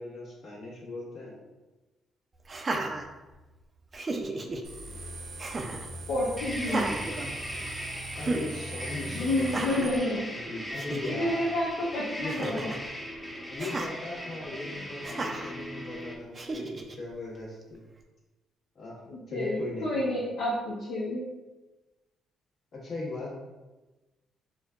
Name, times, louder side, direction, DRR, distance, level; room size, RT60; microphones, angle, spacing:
voice 1, 0.0-1.4 8.1-11.5 12.2-12.8 13.5-17.8 18.7-19.9 22.7-23.3, left 2 dB, 60° left, -6 dB, 1.4 m, -38 dB
Laughter, 2.4-3.6 3.9-4.6 5.4-5.9 6.6-7.8 8.2-8.5 9.4-10.0 10.5-10.6 10.7-11.1 12.3-12.9 13.6-13.9 15.0-15.5 16.3-16.9, right 2 dB, 35° right, 0.4 m, -34 dB
sound 1, 4.6-10.0, right 2 dB, 70° right, 0.6 m, -41 dB
voice 2, 6.1-6.9 9.1-10.3 11.1-12.8 19.1-21.2, left 1 dB, 80° left, -8 dB, 0.7 m, -29 dB
sound 2, 6.4-16.2, equal, 10° left, 0.6 m, -39 dB
4.4 x 2.2 x 2.4 m, 1.1 s
cardioid pair, 90°, 0 cm